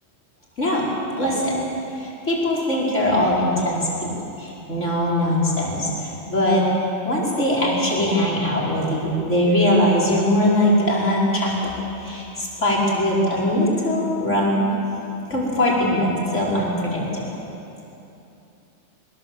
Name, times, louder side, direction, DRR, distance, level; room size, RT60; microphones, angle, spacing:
voice 1, 1.2-1.6 2.0-4.1 4.4-6.6 7.0-11.7 12.0-14.7 15.3-17.2, left 1 dB, 70° left, -5 dB, 5.4 m, -21 dB
22.5 x 21.0 x 7.9 m, 2.8 s
omnidirectional pair, 1.3 m